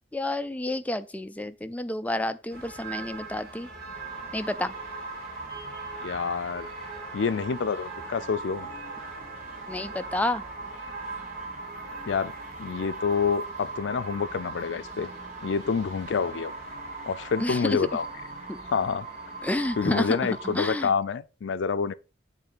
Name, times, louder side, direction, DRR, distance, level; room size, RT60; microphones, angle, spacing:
voice 1, 0.1-3.7 4.3-4.7 9.7-10.4 17.4-17.8 19.4-20.2 20.4-20.9, left 1 dB, 10° left, 0.3 m, -29 dB
sound 1, 2.5-20.7, right 3 dB, 55° right, 2.1 m, -43 dB
sound 2, 3.9-20.8, right 3 dB, 40° right, 2.2 m, -40 dB
voice 2, 6.0-6.7 7.1-8.7 12.1-12.3 12.6-15.1 15.4-16.5 17.1-18.1 18.7-19.1 19.8-21.9, left 5 dB, 75° left, 0.4 m, -27 dB
8.2 x 3.7 x 5.0 m
head